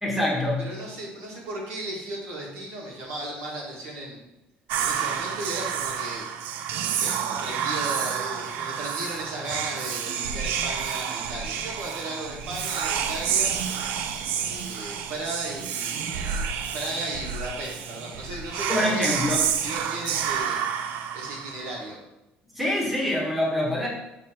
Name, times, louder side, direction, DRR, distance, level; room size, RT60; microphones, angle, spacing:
voice 1, 0.0-0.7 18.7-19.4 22.5-23.9, left 1 dB, ahead, -4 dB, 1.2 m, -25 dB
voice 2, 0.6-4.2 4.7-6.2 6.8-13.5 14.5-16.5 16.7-19.2 19.6-20.6 21.1-22.0, right 1 dB, 85° right, -3 dB, 2.0 m, -35 dB
Whispering, 4.7-21.8, right 8 dB, 65° right, 0.4 m, -29 dB
7.1 x 3.1 x 4.4 m, 0.95 s
cardioid pair, 160°, 3 cm